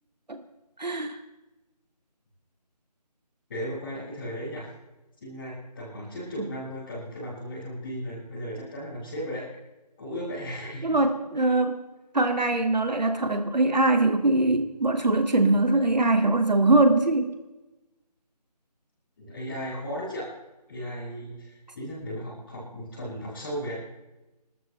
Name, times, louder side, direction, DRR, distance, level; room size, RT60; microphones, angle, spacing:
voice 1, 0.8-1.2 10.8-11.8 12.1-17.4, right 2 dB, 90° right, 5 dB, 2.4 m, -22 dB
voice 2, 3.5-4.7 5.2-9.5 10.0-11.0 11.4-11.5 19.2-20.3 20.7-23.7, equal, 20° left, -13 dB, 6.2 m, -36 dB
29.0 x 13.0 x 3.4 m, 1.0 s
figure-of-eight pair, 175°, 21 cm